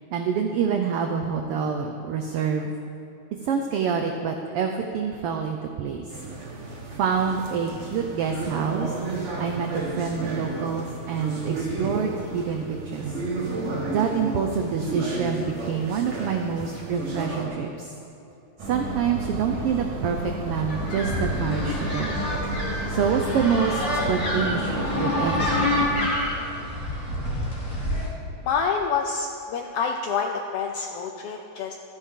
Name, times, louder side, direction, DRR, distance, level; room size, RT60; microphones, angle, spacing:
voice 1, 0.1-2.7 3.4-6.0 6.9-9.0 9.4-13.2 13.9-17.9 18.6-22.2 22.9-25.9, right 6 dB, 90° right, 4 dB, 1.2 m, -27 dB
sound 1, 6.1-17.5, right 3 dB, 55° right, 0.8 m, -32 dB
sound 2, 18.6-26.1, right 1 dB, 75° right, 2.8 m, -32 dB
sound 3, 20.7-28.1, left 1 dB, 65° left, 3.4 m, -27 dB
voice 2, 28.4-31.7, left 5 dB, 85° left, 3 dB, 1.3 m, -27 dB
13.5 x 9.9 x 3.6 m, 2.9 s
omnidirectional pair, 3.3 m